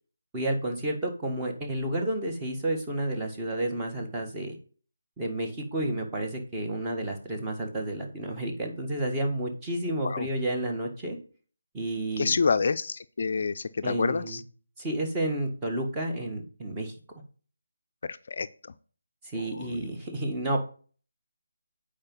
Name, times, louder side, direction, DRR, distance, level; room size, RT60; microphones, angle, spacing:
voice 1, 0.3-4.5 5.2-11.2 11.7-12.4 13.8-14.4 14.8-16.9 19.3-20.6, right 1 dB, 15° right, 0 dB, 1.6 m, -31 dB
voice 2, 12.2-14.4 18.0-18.5 19.4-19.9, left 5 dB, 50° left, 12 dB, 0.4 m, -28 dB
8.7 x 5.0 x 5.5 m, 0.41 s
figure-of-eight pair, 155°, 0 cm